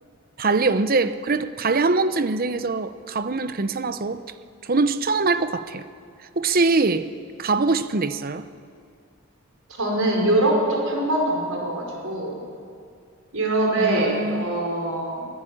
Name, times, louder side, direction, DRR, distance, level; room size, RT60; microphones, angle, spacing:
voice 1, 0.4-4.2 4.6-5.8 6.4-7.1 7.4-8.4 13.8-14.4, right 3 dB, 45° right, 12 dB, 0.8 m, -23 dB
voice 2, 9.8-12.4 13.3-15.3, right 1 dB, 85° right, 0 dB, 5.5 m, -23 dB
24.0 x 14.5 x 8.8 m, 2.3 s
head